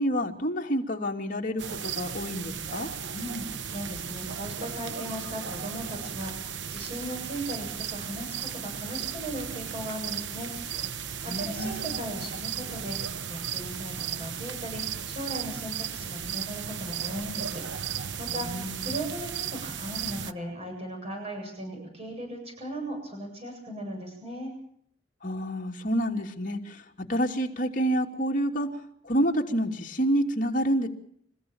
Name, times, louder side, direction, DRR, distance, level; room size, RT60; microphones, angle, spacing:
voice 1, 0.0-2.9 11.3-11.9 18.3-18.9 25.2-28.7 29.0-30.9, equal, 50° left, 1 dB, 3.0 m, -28 dB
sound 1, 1.6-20.3, right 8 dB, 85° right, 0.9 m, -35 dB
voice 2, 3.1-10.5 10.9-24.5, equal, 35° right, 2 dB, 8.0 m, -38 dB
28.0 x 15.5 x 9.0 m, 0.67 s
head